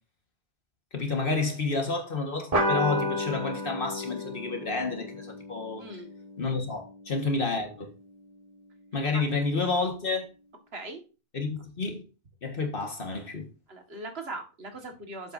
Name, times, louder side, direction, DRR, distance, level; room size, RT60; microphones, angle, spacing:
voice 1, 0.9-5.9 6.4-7.9 8.9-10.3 11.3-12.0 12.4-13.5, left 3 dB, 60° left, 1.8 m, -30 dB
sound 1, 2.5-7.4, left 1 dB, 35° right, 2.0 m, -32 dB
voice 2, 5.8-6.1 9.1-9.3 10.7-11.0 13.7-15.3, right 2 dB, 75° right, 2.0 m, -39 dB
11.0 x 8.0 x 2.7 m
omnidirectional pair, 1.0 m